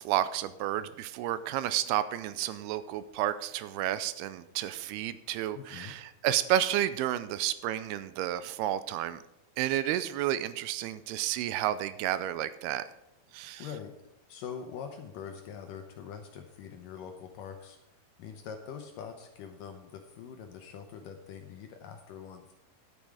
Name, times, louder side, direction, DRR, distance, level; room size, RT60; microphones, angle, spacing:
voice 1, 0.0-9.2 9.6-12.8 13.3-13.7, right 12 dB, 85° right, 14 dB, 2.5 m, -31 dB
voice 2, 5.5-6.0 13.6-13.9 14.3-17.8 18.2-22.5, left 7 dB, 75° left, 5 dB, 2.1 m, -43 dB
11.0 x 8.9 x 4.9 m, 0.92 s
omnidirectional pair, 4.6 m